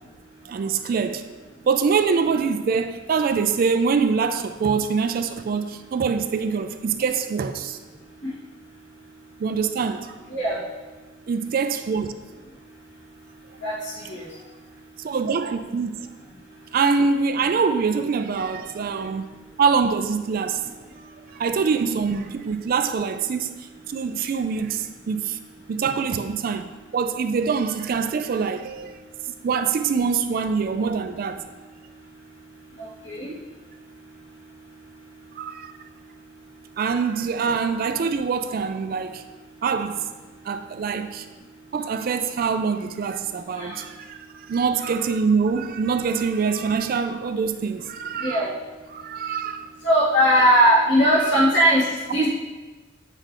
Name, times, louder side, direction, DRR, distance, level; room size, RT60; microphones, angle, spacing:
voice 1, 0.4-1.3 1.7-7.8 9.4-10.1 11.3-12.1 15.0-16.1 16.7-19.2 19.6-20.6 21.3-25.4 25.7-29.1 29.4-31.4 35.4-35.7 36.8-39.2 39.6-40.1 40.4-41.3 41.7-48.4 48.9-49.6 50.3-50.4 51.2-51.5, right 5 dB, 45° right, 0.3 m, -24 dB
voice 2, 13.6-14.2 32.8-33.3 43.6-43.8 48.2-48.5 49.8-52.3, equal, 60° left, 1.7 m, -19 dB
8.8 x 4.4 x 3.0 m
head